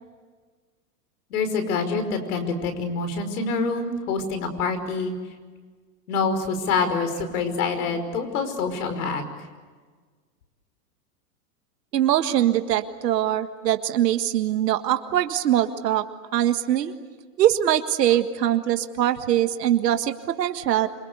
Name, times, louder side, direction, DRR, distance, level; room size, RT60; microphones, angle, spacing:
voice 1, 1.3-5.1 6.1-9.2, left 4 dB, 70° left, 8 dB, 5.5 m, -26 dB
voice 2, 11.9-16.1 16.3-16.9 17.4-20.9, right 12 dB, 85° right, 8 dB, 1.7 m, -22 dB
27.5 x 25.5 x 8.3 m, 1.5 s
supercardioid pair, 145°, 47 cm